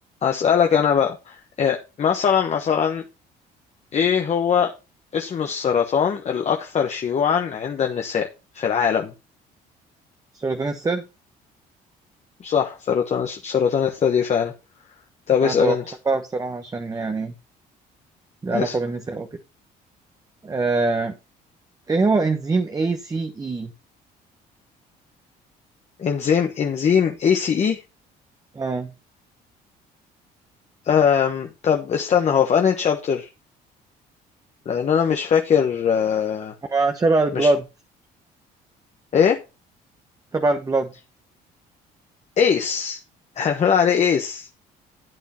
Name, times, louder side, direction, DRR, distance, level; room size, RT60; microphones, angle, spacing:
voice 1, 0.2-3.0 3.9-4.7 5.1-8.3 8.5-9.1 12.4-14.5 15.3-15.8 18.5-18.8 26.0-27.8 30.8-33.3 34.6-36.5 37.3-37.5 39.1-39.4 42.4-43.0 43.4-44.5, left 7 dB, 40° left, 1.2 m, -21 dB
voice 2, 10.3-11.0 15.4-15.8 16.1-17.3 18.4-19.3 20.4-21.2 21.9-23.7 28.5-28.9 36.7-37.6 40.3-40.9, right 3 dB, 20° right, 1.1 m, -23 dB
12.0 x 8.3 x 3.0 m
cardioid pair, 110°, 17 cm